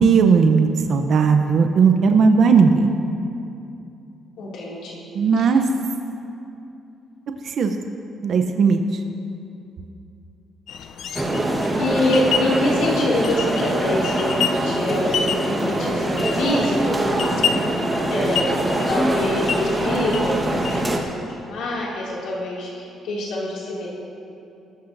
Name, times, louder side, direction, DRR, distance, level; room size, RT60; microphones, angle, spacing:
voice 1, 0.0-2.9 5.1-5.6 7.6-7.7 8.2-8.8, right 5 dB, 50° right, 5 dB, 0.7 m, -16 dB
voice 2, 4.4-5.0 5.3-5.5 11.8-17.7 18.1-18.6 18.9-23.9, left 1 dB, 90° left, -5 dB, 2.4 m, -25 dB
sound 1, 10.7-21.1, left 7 dB, 65° left, 0.5 m, -30 dB
sound 2, 11.1-21.0, right 1 dB, 15° right, 1.3 m, -23 dB
18.5 x 14.0 x 2.6 m, 2.7 s
cardioid pair, 145°, 0 cm